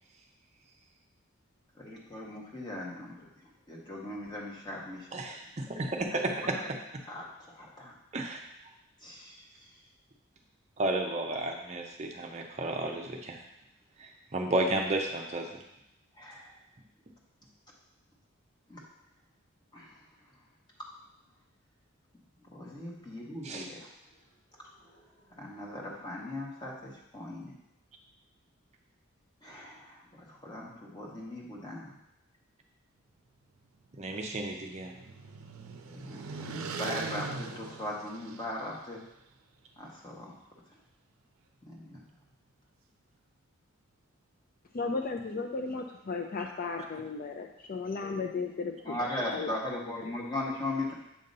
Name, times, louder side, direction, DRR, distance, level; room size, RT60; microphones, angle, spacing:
voice 1, 1.7-3.3 3.7-5.1 6.5-6.7 7.1-7.9 9.0-9.7 16.2-16.6 18.7-18.8 19.7-20.0 22.5-23.9 24.8-27.5 29.4-32.0 35.7-39.0 39.8-40.3 41.7-42.0 48.8-50.9, left 1 dB, 20° left, -3 dB, 1.1 m, -39 dB
voice 2, 5.1-6.6 6.9-7.0 8.1-8.4 10.8-13.4 14.0-15.6 23.4-23.7 34.0-34.9, right 2 dB, 30° right, 2 dB, 0.5 m, -32 dB
sound 1, 34.0-38.8, right 4 dB, 90° right, 0.5 m, -41 dB
voice 3, 44.7-49.6, left 4 dB, 45° left, 3 dB, 0.4 m, -35 dB
7.4 x 2.8 x 5.3 m, 0.85 s
head